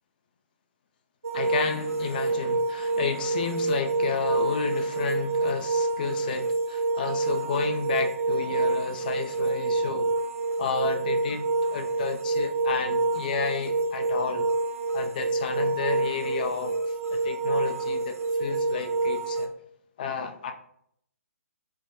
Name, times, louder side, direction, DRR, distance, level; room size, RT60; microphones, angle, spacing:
sound 1, 1.2-19.5, right 3 dB, 65° right, 0.4 m, -27 dB
voice 1, 1.3-10.1 10.6-14.5 14.9-19.5 20.0-20.5, left 6 dB, 35° left, 0.3 m, -32 dB
3.9 x 2.1 x 2.7 m
figure-of-eight pair, 135°, 8 cm